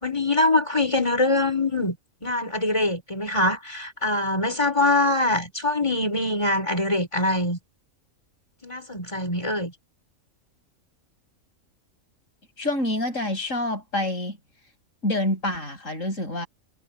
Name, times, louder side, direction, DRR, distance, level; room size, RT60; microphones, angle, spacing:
voice 1, 0.0-2.0 2.2-7.6 8.6-9.7, left 2 dB, 20° left, 4.4 m, -23 dB
voice 2, 12.6-14.4 15.0-16.5, left 1 dB, 65° left, 7.8 m, -27 dB
omnidirectional pair, 1.4 m